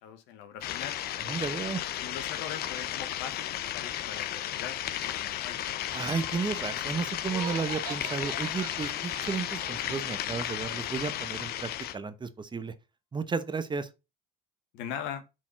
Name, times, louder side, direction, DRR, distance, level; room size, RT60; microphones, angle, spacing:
voice 1, 0.0-1.0 2.0-5.6 14.7-15.2, left 9 dB, 75° left, 1.3 m, -41 dB
sound 1, 0.6-12.0, left 12 dB, 60° left, 0.7 m, -34 dB
voice 2, 1.3-1.8 5.9-12.7 13.1-13.9, right 5 dB, 25° right, 0.9 m, -33 dB
Glockenspiel, 6.1-10.0, left 8 dB, 25° left, 1.5 m, -53 dB
Laughter, 7.2-10.1, right 11 dB, 90° right, 1.2 m, -42 dB
6.3 x 4.2 x 3.7 m
supercardioid pair, 80°, 19 cm